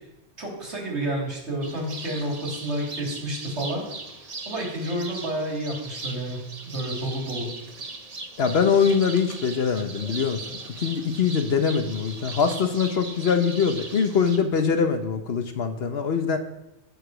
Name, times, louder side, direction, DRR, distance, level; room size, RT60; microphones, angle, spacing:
voice 1, 0.4-3.8 4.4-7.5, right 1 dB, 75° right, -2 dB, 3.3 m, -30 dB
sound 1, 1.6-14.4, right 3 dB, 35° right, 1.0 m, -39 dB
voice 2, 8.4-10.4 10.8-16.4, left 6 dB, 65° left, 8 dB, 1.2 m, -23 dB
14.5 x 5.0 x 6.1 m, 0.87 s
omnidirectional pair, 1.2 m